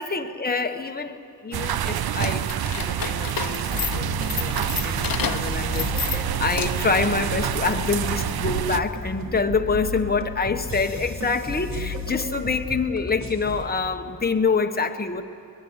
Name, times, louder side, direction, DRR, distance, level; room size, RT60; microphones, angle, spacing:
voice 1, 0.0-15.2, left 4 dB, 25° left, 5 dB, 1.2 m, -26 dB
sound 1, 1.5-8.8, right 10 dB, 70° right, 0.6 m, -27 dB
sound 2, 2.1-7.0, left 7 dB, 60° left, 1.1 m, -31 dB
sound 3, 3.7-13.7, left 2 dB, 45° right, 3.2 m, -34 dB
22.5 x 21.5 x 8.1 m, 2.5 s
wide cardioid pair, 95°, 39 cm